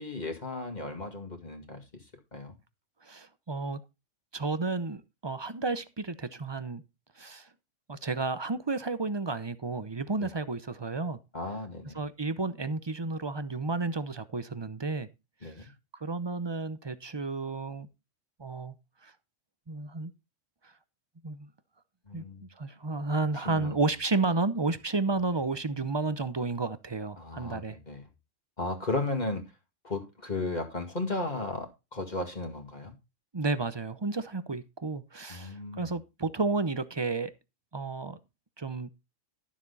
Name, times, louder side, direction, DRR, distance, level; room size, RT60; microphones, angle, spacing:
voice 1, 0.0-1.8 2.3-2.6 10.2-10.3 11.3-12.0 15.4-15.7 22.1-22.5 23.4-23.8 27.2-28.0 28.6-29.4 29.8-32.9 35.3-35.9, left 2 dB, 35° left, 2.1 m, -35 dB
voice 2, 3.0-3.8 4.3-6.8 7.2-7.5 7.9-11.2 11.9-15.1 15.4-17.9 18.4-18.7 19.0-19.1 19.7-20.1 20.6-20.7 21.2-21.5 22.1-22.2 22.6-27.8 33.3-37.3 37.7-38.2 38.6-38.9, right 3 dB, 25° right, 0.6 m, -32 dB
12.5 x 7.3 x 4.0 m
omnidirectional pair, 1.3 m